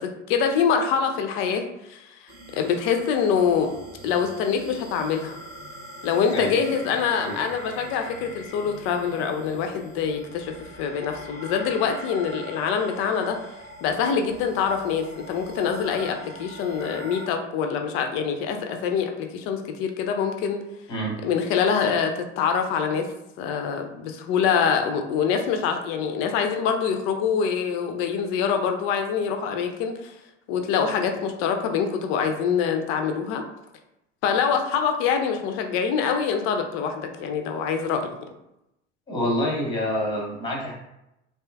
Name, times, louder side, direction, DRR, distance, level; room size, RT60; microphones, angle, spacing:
voice 1, 0.0-2.0 2.5-3.8 4.0-5.4 6.0-13.4 13.8-20.6 21.2-23.1 23.4-30.1 30.5-33.4 34.2-38.2, left 6 dB, 35° left, 5 dB, 0.4 m, -25 dB
sound 1, 2.3-17.3, equal, 25° right, 0.8 m, -42 dB
voice 2, 39.1-40.7, equal, 10° left, -1 dB, 0.7 m, -27 dB
2.6 x 2.3 x 2.2 m, 0.87 s
figure-of-eight pair, 70°, 37 cm